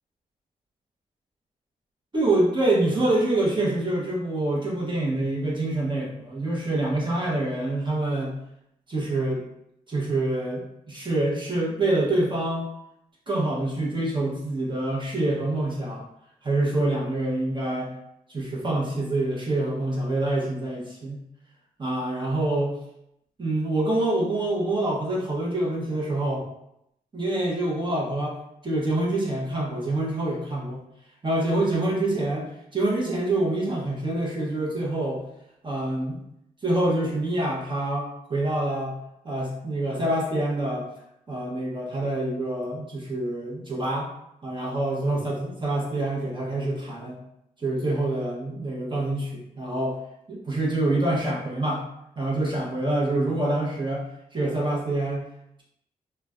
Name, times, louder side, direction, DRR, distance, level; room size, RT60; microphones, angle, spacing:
voice 1, 2.1-8.4 8.9-9.4 9.9-12.7 13.3-16.0 16.4-17.9 18.3-21.2 21.8-22.7 23.4-26.5 27.1-28.4 28.6-30.8 31.2-35.2 35.6-36.2 36.6-38.9 39.2-40.9 41.3-44.1 44.4-47.2 47.6-50.0 50.3-51.8 52.2-54.0 54.3-55.2, right 2 dB, 30° right, -4 dB, 0.8 m, -26 dB
3.1 x 2.2 x 2.4 m, 0.79 s
cardioid pair, 60°, 15 cm